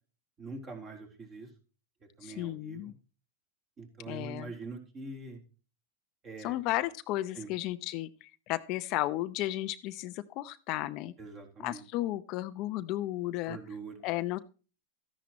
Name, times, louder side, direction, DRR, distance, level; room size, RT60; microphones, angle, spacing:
voice 1, 0.4-1.5 2.2-2.9 3.8-5.4 6.2-6.6 7.3-7.5 11.2-11.8 13.5-14.0, right 3 dB, 25° right, 2 dB, 3.6 m, -43 dB
voice 2, 2.2-2.9 4.1-4.5 6.4-11.1 11.6-13.6 14.0-14.4, left 16 dB, 45° left, 11 dB, 0.6 m, -34 dB
13.5 x 10.5 x 3.0 m, 0.34 s
supercardioid pair, 140°, 0 cm